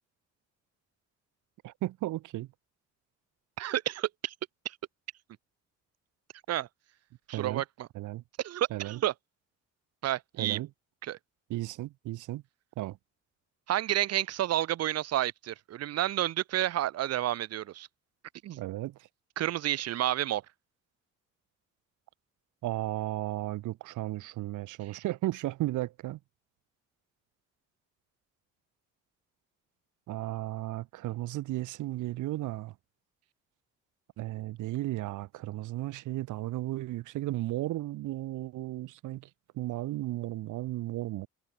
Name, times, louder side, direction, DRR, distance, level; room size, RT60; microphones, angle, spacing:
voice 1, 1.6-2.5 7.3-7.6 7.9-8.2 8.7-9.0 10.4-10.7 11.5-12.4 12.8-13.0 18.6-19.0 22.6-26.2 30.1-32.7 34.2-39.3 39.5-41.3, right 16 dB, 80° right, 0.9 m, -34 dB
voice 2, 3.6-4.3 4.6-4.8 6.5-6.7 7.3-7.9 8.4-9.1 10.0-10.6 11.0-11.2 13.7-17.9 18.4-18.6 19.4-20.4 24.8-25.0, right 13 dB, 55° right, 0.6 m, -30 dB
cardioid pair, 90°, 30 cm